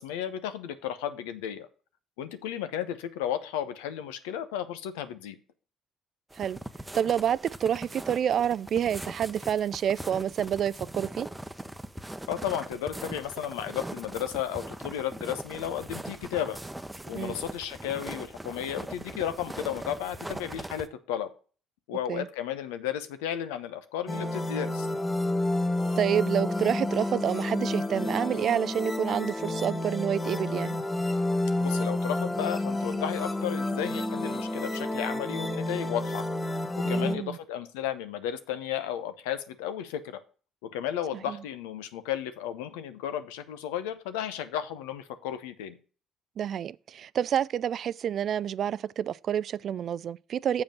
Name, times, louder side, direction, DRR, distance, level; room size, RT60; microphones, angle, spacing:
voice 1, 0.0-1.7 2.2-5.4 12.3-16.6 17.1-21.3 21.9-24.9 31.6-36.2 36.7-40.2 40.6-45.8, left 10 dB, 90° left, 0.8 m, -34 dB
sound 1, 6.3-20.9, right 1 dB, 10° right, 0.9 m, -41 dB
voice 2, 6.9-11.3 17.1-17.4 22.1-22.3 26.0-30.8 36.8-37.4 41.3-41.4 46.4-50.6, right 9 dB, 60° right, 0.3 m, -28 dB
sound 2, 24.1-37.1, left 2 dB, 20° left, 1.3 m, -30 dB
7.2 x 5.2 x 6.0 m
supercardioid pair, 65°, 0 cm